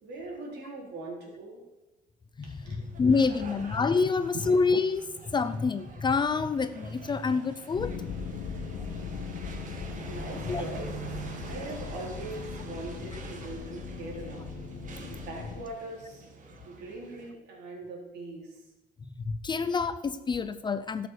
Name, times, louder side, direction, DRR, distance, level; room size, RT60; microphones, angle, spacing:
voice 1, 0.0-1.6 2.4-3.0 10.1-11.2 11.4-14.4 15.1-16.3 16.6-18.6, right 2 dB, 80° right, -2 dB, 4.1 m, -41 dB
sound 1, 2.8-17.3, right 5 dB, 50° right, 1.8 m, -45 dB
voice 2, 3.0-5.1 5.3-7.9 10.5-10.6 19.3-21.1, left 4 dB, 25° left, 12 dB, 0.6 m, -27 dB
sound 2, 7.7-15.6, left 6 dB, 90° left, 1.7 m, -39 dB
12.5 x 6.9 x 6.7 m, 1.1 s
cardioid pair, 110°, 17 cm